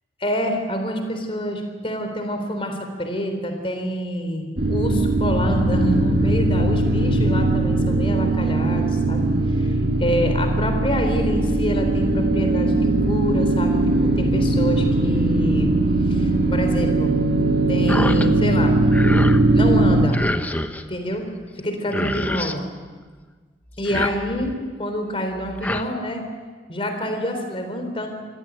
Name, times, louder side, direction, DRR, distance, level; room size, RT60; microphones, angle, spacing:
voice 1, 0.2-9.3 9.6-9.7 10.0-12.7 13.0-15.8 16.1-17.1 17.7-18.8 19.5-20.2 20.9-21.2 21.6-22.6 23.8-26.2 26.7-28.1, equal, 30° left, 5 dB, 3.7 m, -26 dB
sound 1, 4.6-20.1, right 2 dB, 60° right, 2.0 m, -20 dB
sound 2, 17.9-18.3 18.6-19.4 20.1-20.8 21.6-21.7 21.9-22.6 23.7-24.6 25.3-25.8, left 1 dB, 10° left, 0.9 m, -27 dB
25.0 x 15.5 x 9.2 m, 1.5 s
head